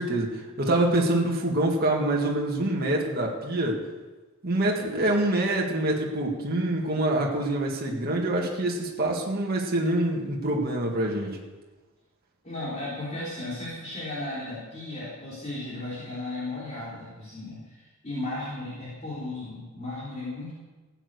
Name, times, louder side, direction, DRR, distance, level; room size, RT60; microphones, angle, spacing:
voice 1, 0.0-3.8 4.4-11.4, right 1 dB, 45° right, -1 dB, 1.9 m, -25 dB
voice 2, 12.4-20.5, left 2 dB, 30° left, -8 dB, 3.6 m, -35 dB
15.5 x 9.0 x 6.6 m, 1.2 s
head